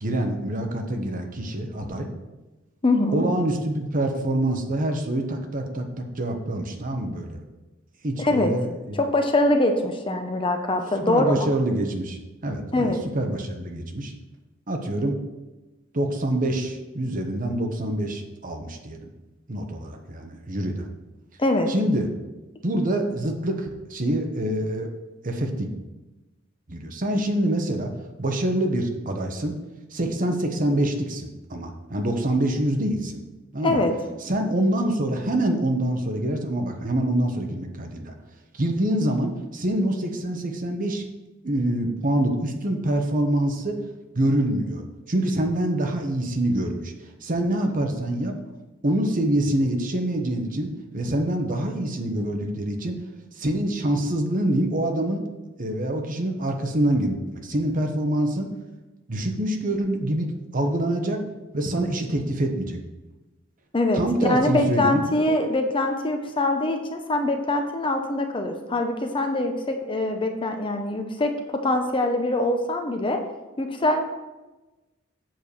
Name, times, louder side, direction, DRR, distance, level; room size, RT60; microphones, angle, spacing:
voice 1, 0.0-2.1 3.1-7.4 8.0-9.0 11.0-14.1 14.7-15.2 15.9-19.1 19.5-20.9 21.7-22.1 22.6-24.9 25.2-25.7 26.7-27.9 28.2-29.6 29.9-33.2 33.5-33.8 34.2-38.1 38.5-41.0 41.4-43.8 44.1-46.9 47.2-48.4 48.8-53.0 53.4-55.3 55.6-58.5 59.1-61.2 61.5-62.8 63.9-65.0, right 1 dB, 45° right, 4 dB, 1.1 m, -25 dB
voice 2, 2.8-3.3 8.2-8.5 8.9-11.5 12.7-13.0 21.4-21.7 33.6-33.9 63.7-73.2 73.6-74.0, left 2 dB, 25° left, 5 dB, 0.8 m, -23 dB
7.6 x 4.7 x 6.9 m, 1.1 s
head